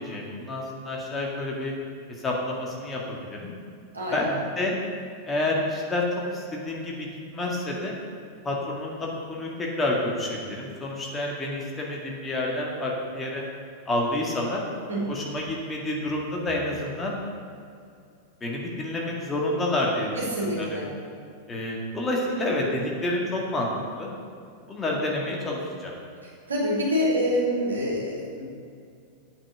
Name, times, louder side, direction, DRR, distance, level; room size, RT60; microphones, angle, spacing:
voice 1, 0.0-1.7 2.2-3.5 4.1-4.7 5.3-6.0 6.3-7.1 7.3-7.9 8.4-13.4 13.9-14.6 15.1-17.1 18.4-20.8 21.5-24.1 24.7-25.9, left 1 dB, 20° left, -2 dB, 2.0 m, -29 dB
voice 2, 3.9-4.3 14.9-15.3 20.1-20.9 26.2-28.5, equal, 75° right, -5 dB, 3.0 m, -27 dB
8.4 x 6.1 x 8.1 m, 2.4 s
figure-of-eight pair, 90°, 0 cm